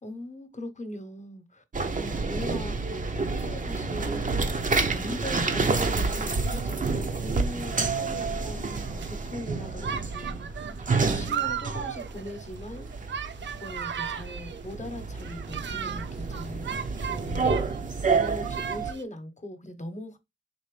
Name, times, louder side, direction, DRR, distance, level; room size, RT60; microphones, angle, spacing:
voice 1, 0.0-1.6 2.0-4.3 4.9-10.7 11.0-12.9 13.6-17.5 18.1-20.2, left 1 dB, 35° left, 1.1 m, -40 dB
sound 1, 1.7-18.9, right 4 dB, 40° right, 0.8 m, -29 dB
sound 2, 8.7-9.1 9.8-14.7 15.2-17.8 18.1-19.0, right 8 dB, 60° right, 0.5 m, -36 dB
4.2 x 2.9 x 3.3 m
cardioid pair, 50°, 21 cm